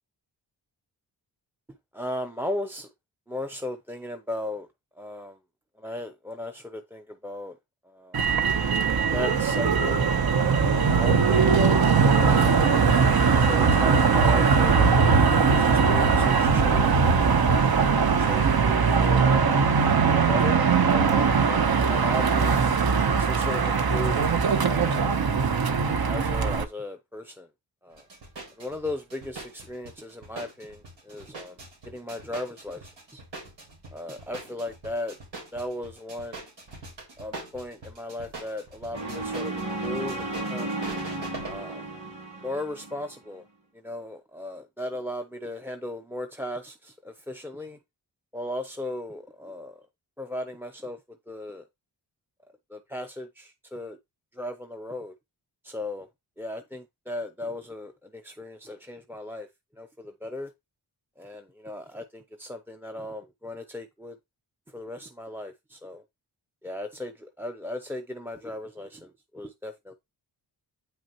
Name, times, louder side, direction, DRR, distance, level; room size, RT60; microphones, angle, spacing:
voice 1, 1.9-2.9 3.3-4.7 5.0-5.4 5.8-7.6 7.9-8.2 9.1-10.0 10.6-12.4 13.4-14.9 15.5-17.1 18.2-19.7 20.1-22.6 23.2-24.3 24.6-25.2 26.1-27.5 27.8-28.1 28.6-31.6 31.8-33.2 33.9-35.2 35.5-36.4 37.2-40.7 41.4-41.8 42.4-43.4 43.7-47.8 48.3-49.8 50.2-51.0 51.3-51.6 52.7-54.0 54.3-55.1 55.6-56.1 56.4-59.5 59.8-60.5 61.2-64.2 64.7-66.0 66.6-69.9, left 1 dB, 5° right, 0.6 m, -36 dB
Motor vehicle (road), 8.1-26.6, right 5 dB, 55° right, 1.0 m, -21 dB
sound 1, 27.9-41.7, right 3 dB, 85° right, 3.9 m, -43 dB
sound 2, 38.9-43.1, right 2 dB, 35° right, 2.8 m, -33 dB
8.9 x 5.9 x 3.0 m
wide cardioid pair, 90°, 43 cm